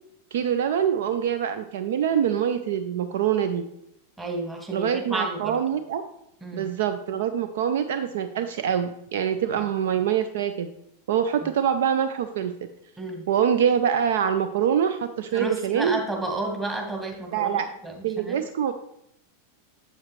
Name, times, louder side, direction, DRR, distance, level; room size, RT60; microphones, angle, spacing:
voice 1, 0.3-3.6 4.7-6.0 6.5-10.7 11.1-12.5 13.3-16.0 17.3-17.7 18.0-18.7, right 8 dB, 55° right, 9 dB, 0.4 m, -24 dB
voice 2, 4.2-5.6 6.4-6.7 13.0-13.2 15.3-18.4, right 2 dB, 10° right, 1 dB, 1.8 m, -31 dB
7.7 x 7.1 x 3.1 m, 0.79 s
figure-of-eight pair, 90°, 0 cm